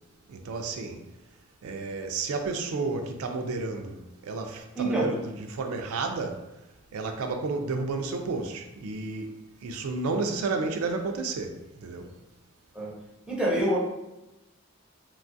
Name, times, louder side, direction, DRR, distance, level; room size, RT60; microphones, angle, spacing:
voice 1, 0.3-1.0 1.6-6.4 6.9-12.1, right 3 dB, 90° right, 0.4 m, -32 dB
voice 2, 4.7-5.2 12.7-12.9 13.3-13.8, right 1 dB, 5° right, 0.5 m, -26 dB
3.1 x 2.3 x 2.5 m
head